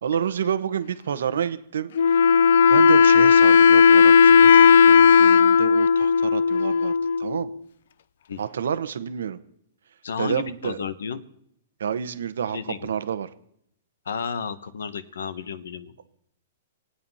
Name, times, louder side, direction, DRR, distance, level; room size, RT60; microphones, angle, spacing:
voice 1, 0.0-1.9 2.7-7.5 8.4-9.4 10.2-10.8 11.8-13.3, right 8 dB, 85° right, 12 dB, 1.1 m, -29 dB
Wind instrument woodwind instrument, 2.0-7.5, left 6 dB, 70° left, 0.6 m, -15 dB
voice 2, 10.0-11.2 12.5-12.9 14.0-15.9, left 6 dB, 90° left, 14 dB, 1.3 m, -32 dB
25.5 x 8.7 x 5.6 m, 0.73 s
hypercardioid pair, 150°, 0 cm